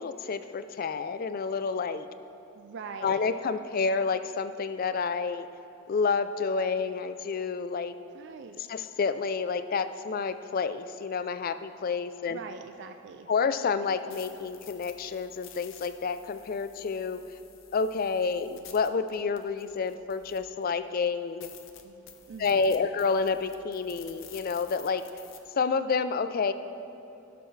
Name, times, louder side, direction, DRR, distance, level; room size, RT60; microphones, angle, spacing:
voice 1, 0.0-2.1 3.0-5.5 5.9-7.9 8.7-12.4 13.3-17.2 17.7-21.5 22.4-25.0 25.6-26.5, left 5 dB, 45° left, 11 dB, 0.4 m, -29 dB
voice 2, 2.5-3.3 8.1-8.6 12.3-13.3 21.8-22.9, right 5 dB, 60° right, 7 dB, 0.4 m, -43 dB
sound 1, 13.8-20.6 21.0-21.1 21.4-25.4, left 9 dB, 70° left, 0.7 m, -51 dB
16.5 x 6.8 x 3.2 m, 2.9 s
head